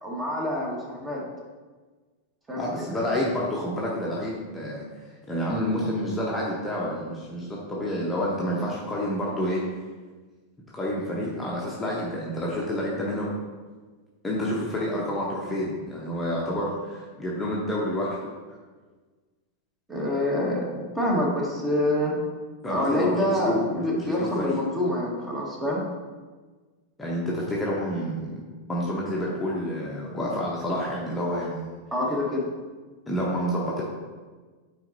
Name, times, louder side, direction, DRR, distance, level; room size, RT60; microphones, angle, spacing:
voice 1, 0.0-1.2 2.5-3.0 19.9-22.2 22.7-25.8 31.9-32.5, left 1 dB, 15° right, -2 dB, 1.5 m, -26 dB
voice 2, 2.6-9.6 10.7-13.3 14.2-18.3 22.6-24.6 27.0-28.4 28.7-31.8 33.1-33.8, equal, 10° left, -5 dB, 1.0 m, -29 dB
8.8 x 4.1 x 2.7 m, 1.4 s
figure-of-eight pair, 90°, 0 cm